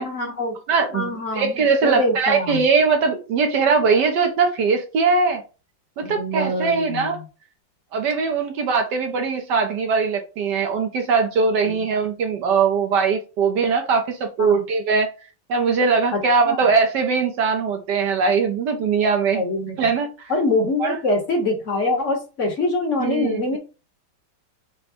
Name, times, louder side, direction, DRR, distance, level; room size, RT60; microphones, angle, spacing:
voice 1, 0.0-0.5 0.9-2.6 6.2-7.1 11.6-11.8 14.4-14.6 16.1-16.2 16.5-16.6 19.3-19.7 20.3-23.6, left 2 dB, 45° left, 2 dB, 1.1 m, -24 dB
voice 2, 0.7-5.4 6.0-7.2 7.9-15.1 15.5-19.4 19.8-20.3 20.8-21.0 23.0-23.6, right 5 dB, 65° right, 5 dB, 1.1 m, -21 dB
5.7 x 2.2 x 4.2 m, 0.32 s
omnidirectional pair, 2.4 m